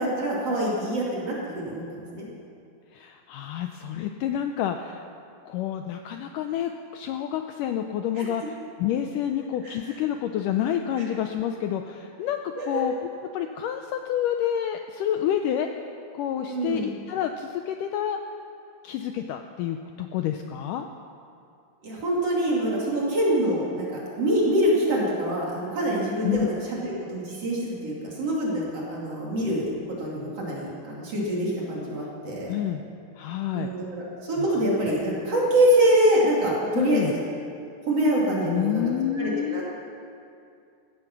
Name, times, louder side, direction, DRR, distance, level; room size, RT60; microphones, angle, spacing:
voice 1, 0.0-2.2 8.2-8.3 9.6-9.8 12.6-12.8 16.5-16.9 21.8-23.9 24.1-29.6 30.0-32.5 33.5-37.2 37.9-38.8 39.1-39.6, right 1 dB, 45° right, -4 dB, 3.3 m, -25 dB
voice 2, 2.9-5.1 5.5-12.9 13.3-18.2 18.8-20.9 26.2-26.5 32.5-32.8 33.2-33.7 34.6-34.7 36.7-37.1 38.4-39.6, left 10 dB, 85° left, 6 dB, 1.9 m, -28 dB
16.5 x 14.0 x 5.9 m, 2.5 s
omnidirectional pair, 4.4 m